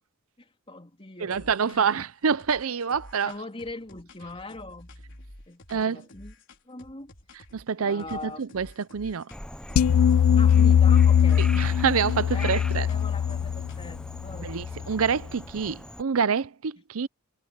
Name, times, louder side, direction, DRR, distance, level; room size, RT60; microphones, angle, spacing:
voice 1, 0.4-2.0 3.2-4.9 5.5-6.3 6.7-7.1 7.8-8.4 10.3-11.5 12.3-14.5 14.8-14.9, left 2 dB, 25° left, 3.3 m, -41 dB
voice 2, 1.2-3.3 5.7-6.0 7.5-8.7 8.9-9.3 11.4-12.9 14.4-17.1, right 6 dB, 80° right, 0.6 m, -27 dB
sound 1, 1.3-2.0 2.4-7.7 8.0-9.4 9.7-14.1, left 1 dB, 60° left, 4.4 m, -50 dB
Frog, 9.3-16.0, left 1 dB, 5° left, 0.7 m, -41 dB
sound 2, 9.8-15.0, left 8 dB, 75° left, 0.3 m, -21 dB
head